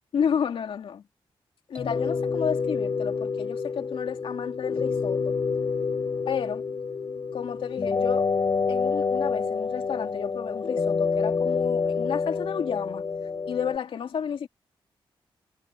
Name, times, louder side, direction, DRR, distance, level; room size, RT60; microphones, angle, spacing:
voice 1, 0.1-1.0 1.7-5.4 6.3-6.6 7.3-8.3 8.7-13.1 13.5-14.5, left 7 dB, 70° left, 2.7 m, -31 dB
sound 1, 1.7-2.9, left 2 dB, 10° left, 2.4 m, -49 dB
sound 2, 1.8-13.8, left 5 dB, 45° left, 3.5 m, -28 dB
cardioid pair, 105°, 9 cm